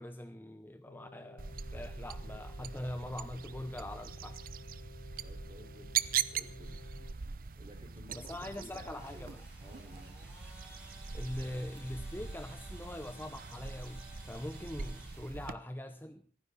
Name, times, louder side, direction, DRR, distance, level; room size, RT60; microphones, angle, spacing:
voice 1, 0.0-4.4 8.1-9.4 11.1-16.2, left 1 dB, 10° left, 0.8 m, -43 dB
sound 1, 0.9-7.1, left 3 dB, 85° left, 1.7 m, -54 dB
sound 2, 1.4-15.5, right 7 dB, 55° right, 0.7 m, -41 dB
voice 2, 5.2-6.9 7.5-10.1, equal, 30° right, 5.0 m, -55 dB
sound 3, 6.6-15.3, right 1 dB, 5° right, 7.7 m, -56 dB
28.0 x 9.9 x 4.2 m
head